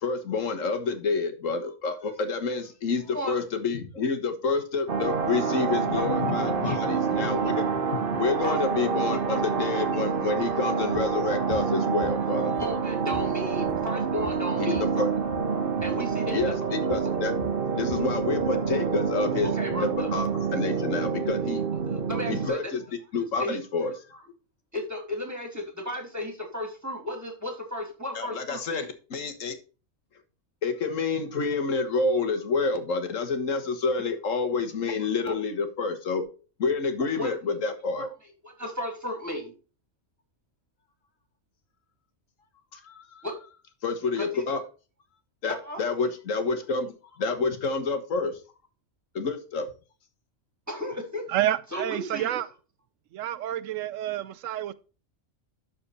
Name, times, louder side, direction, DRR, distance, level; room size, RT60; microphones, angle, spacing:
voice 1, 0.0-12.6 14.6-15.1 16.3-17.3 17.8-21.6 22.3-22.8 23.1-23.9 28.1-29.6 30.6-36.2 36.6-38.1 42.7-43.2 43.8-44.6 45.4-48.3 49.1-49.7, left 4 dB, 85° left, 1.7 m, -28 dB
sound 1, 4.9-22.5, right 6 dB, 50° right, 1.0 m, -27 dB
voice 2, 8.4-8.9 9.3-9.4 12.5-14.9 15.8-16.5 19.4-20.1 21.9-22.7 23.3-23.9 24.7-28.9 35.3-35.4 37.1-37.3 38.4-39.5 43.2-43.3 44.2-44.4 45.6-45.8 50.7-51.2 51.7-52.3, left 1 dB, 15° right, 2.6 m, -34 dB
sound 2, 10.9-11.1 11.5-11.7 12.0-12.9 13.1-15.0 15.2-15.5 15.8-16.0 16.4-16.6 16.9-18.6, left 5 dB, 25° left, 1.0 m, -43 dB
voice 3, 51.3-52.5 53.1-54.7, right 12 dB, 85° right, 1.0 m, -29 dB
12.0 x 4.4 x 4.1 m
omnidirectional pair, 1.3 m